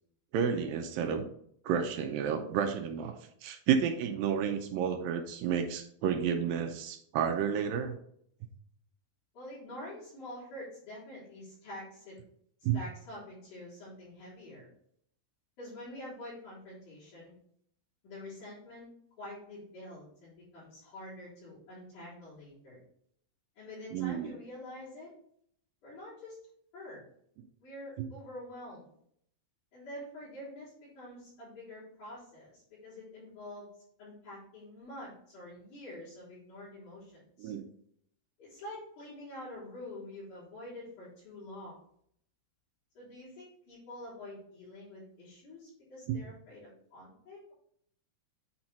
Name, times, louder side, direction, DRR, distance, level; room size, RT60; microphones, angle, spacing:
voice 1, 0.3-1.3 1.7-3.1 3.4-8.0 12.6-12.8 23.9-24.3 28.0-28.1 37.4-37.6 46.1-46.2, right 7 dB, 75° right, 5 dB, 2.3 m, -31 dB
voice 2, 9.3-12.2 12.7-14.7 15.6-17.3 18.0-18.9 19.2-22.8 23.6-25.1 25.8-26.4 26.7-27.0 27.6-28.9 29.7-33.7 34.0-37.5 38.4-41.8 43.0-47.5, left 1 dB, 55° left, -12 dB, 5.1 m, -46 dB
8.7 x 4.3 x 4.3 m, 0.67 s
omnidirectional pair, 4.4 m